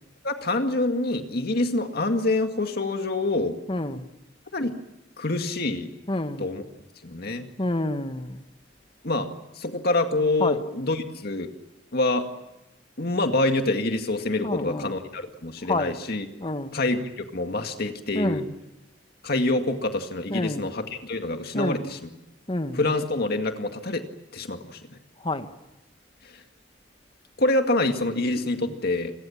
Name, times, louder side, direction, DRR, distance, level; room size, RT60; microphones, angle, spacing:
voice 1, 0.2-3.5 4.5-4.7 5.2-5.9 6.4-6.6 7.0-7.5 9.0-9.3 9.6-11.5 11.9-12.3 13.0-16.2 16.7-18.4 19.2-22.1 22.7-24.0 24.3-24.8 27.4-29.1, left 2 dB, 60° left, 2.1 m, -26 dB
voice 2, 3.7-4.1 6.1-6.5 7.6-8.4 10.4-10.6 14.4-15.0 15.7-15.9 16.4-16.8 18.1-18.5 20.3-20.7 21.5-22.0 22.5-22.8 25.2-25.5 28.7-28.8, left 2 dB, 30° left, 1.5 m, -28 dB
28.0 x 22.5 x 7.3 m
head